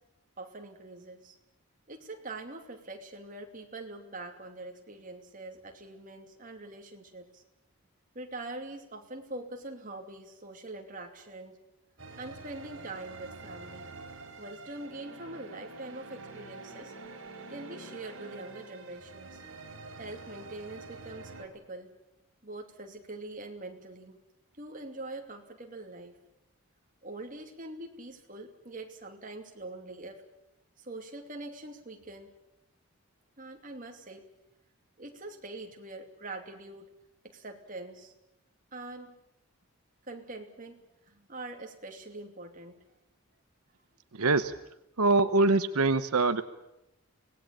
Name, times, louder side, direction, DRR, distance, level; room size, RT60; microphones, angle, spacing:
voice 1, 0.4-1.4 1.9-7.4 8.1-11.6 12.2-13.9 14.4-16.9 17.5-19.4 20.0-21.9 22.4-24.2 24.6-26.2 27.0-30.2 30.8-32.3 33.4-34.3 35.0-36.9 37.2-38.1 38.7-39.1 40.1-42.8, right 2 dB, 35° right, 3 dB, 2.8 m, -43 dB
sound 1, 12.0-21.5, right 3 dB, 60° right, 4.2 m, -46 dB
voice 2, 44.1-44.5 45.0-46.4, right 3 dB, 90° right, 10 dB, 1.0 m, -24 dB
24.5 x 19.0 x 8.9 m, 0.87 s
head